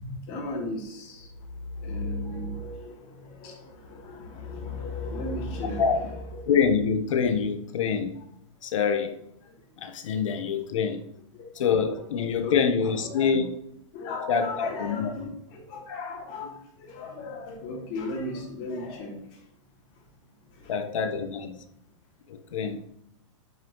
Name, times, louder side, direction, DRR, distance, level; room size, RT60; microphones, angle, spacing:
voice 1, 0.0-1.3 1.8-6.2 10.1-10.2 11.3-11.5 12.4-13.3 13.9-19.1 20.6-21.0, left 2 dB, 40° left, -1 dB, 3.0 m, -36 dB
voice 2, 6.5-8.2 8.6-9.1 9.8-11.0 11.5-13.6 14.3-15.1 20.7-21.6 22.3-22.8, left 6 dB, 75° left, 6 dB, 1.1 m, -25 dB
9.4 x 5.6 x 3.1 m, 0.78 s
hypercardioid pair, 140°, 17 cm